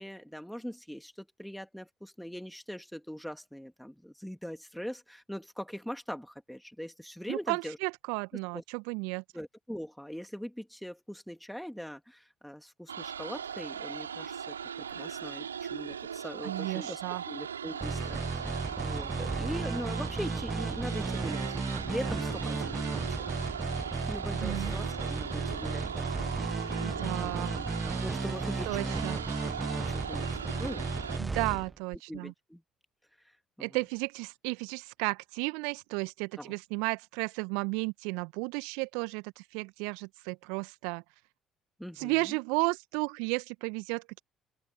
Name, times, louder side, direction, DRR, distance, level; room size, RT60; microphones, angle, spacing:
voice 1, 0.0-7.8 8.5-8.6 9.3-14.5 14.9-17.0 17.3-22.8 23.1-23.3 24.1-27.7 28.0-28.9 29.6-30.3 30.6-31.6 32.1-32.6 33.6-33.8 36.4-36.5 41.8-42.4, equal, ahead, 3.3 m, -42 dB
voice 2, 7.3-9.2 16.4-17.2 24.4-24.8 26.8-27.5 28.6-29.2 31.2-32.3 33.6-41.0 42.0-44.2, right 33 dB, 65° right, 1.6 m, -33 dB
sound 1, 12.9-31.2, right 8 dB, 80° right, 5.6 m, -39 dB
sound 2, 17.8-32.0, right 3 dB, 25° right, 1.1 m, -34 dB
open air
figure-of-eight pair, 50°, 0 cm